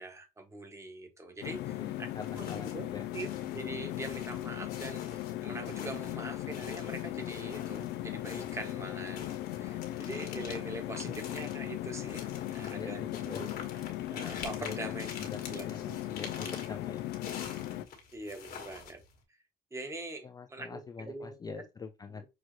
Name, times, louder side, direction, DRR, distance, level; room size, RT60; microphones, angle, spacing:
voice 1, 0.0-2.1 2.4-2.9 3.1-12.2 12.5-13.5 14.1-15.1 15.5-16.0 16.4-16.5 18.1-19.0 19.7-21.6 22.2-22.3, right 2 dB, 15° right, 1.2 m, -43 dB
sound 1, 1.4-17.9, left 14 dB, 85° left, 0.5 m, -38 dB
voice 2, 1.6-3.1 12.6-12.9 13.3-13.6 14.6-14.9 15.2-17.0 20.2-22.2, left 5 dB, 25° left, 0.4 m, -44 dB
sound 2, 2.2-2.9 3.1-8.0 8.2-19.2, left 6 dB, 65° left, 1.6 m, -46 dB
6.1 x 2.4 x 3.2 m
cardioid pair, 110°, 17 cm